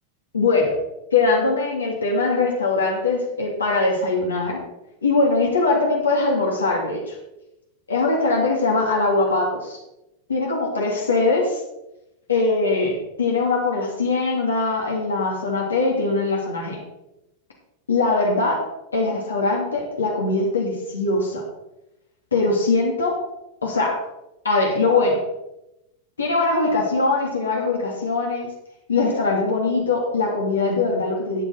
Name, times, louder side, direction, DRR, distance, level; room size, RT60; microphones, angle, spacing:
voice 1, 0.3-0.7 1.1-4.6 5.0-7.2 7.9-9.8 10.3-11.6 12.3-16.8 17.9-18.6 18.9-21.4 22.3-23.2 23.6-24.0 24.4-25.2 26.2-28.5 28.9-31.4, left 3 dB, 75° left, -1 dB, 2.9 m, -21 dB
13.0 x 9.1 x 4.1 m, 0.90 s
figure-of-eight pair, 90°, 0 cm